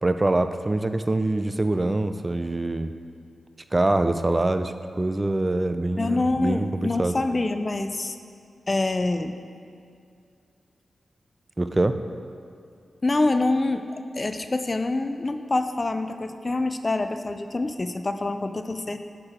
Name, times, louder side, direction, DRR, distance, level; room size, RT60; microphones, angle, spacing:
voice 1, 0.0-2.9 3.7-7.1 11.6-12.0, right 2 dB, 30° right, 9 dB, 0.4 m, -24 dB
voice 2, 6.0-8.2 8.7-9.4 13.0-13.9 14.1-19.0, left 2 dB, 40° left, 9 dB, 0.4 m, -26 dB
6.6 x 6.6 x 4.3 m, 2.4 s
cardioid pair, 45°, 0 cm